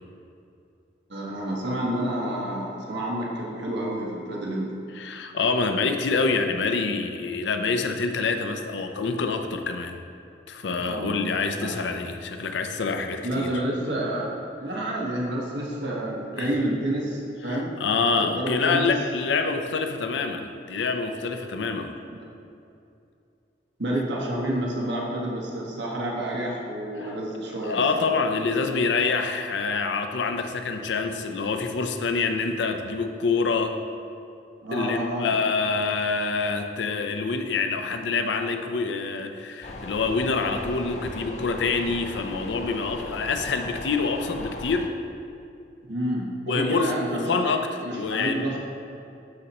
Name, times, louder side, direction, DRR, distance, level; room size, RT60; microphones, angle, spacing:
voice 1, 1.1-4.7 10.8-11.7 13.2-18.8 22.1-22.3 23.8-28.1 34.6-35.3 45.8-47.5 47.8-48.6, right 1 dB, 90° right, -3 dB, 1.3 m, -29 dB
voice 2, 5.0-10.0 10.5-13.5 16.4-16.5 17.5-21.9 27.0-27.1 27.6-33.8 34.7-44.9 46.5-48.4, left 4 dB, 90° left, 6 dB, 0.5 m, -26 dB
sound 1, 39.6-44.9, left 1 dB, 40° left, 0.5 m, -38 dB
11.5 x 4.1 x 2.9 m, 2.6 s
head